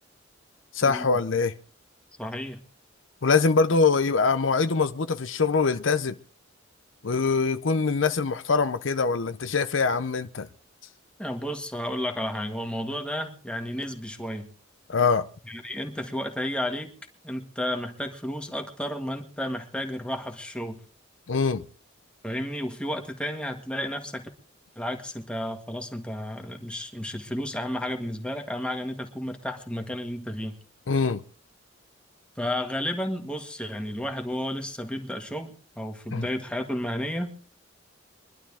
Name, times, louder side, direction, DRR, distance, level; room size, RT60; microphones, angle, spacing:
voice 1, 0.7-1.5 3.2-6.2 7.0-10.5 14.9-15.3 21.3-21.6 30.9-31.2 36.1-36.3, left 4 dB, 75° left, 0.7 m, -23 dB
voice 2, 2.2-2.6 11.2-14.5 15.5-16.9 17.2-20.8 22.2-24.3 24.8-30.5 32.4-37.3, left 1 dB, 5° left, 1.8 m, -32 dB
23.5 x 11.5 x 3.6 m
head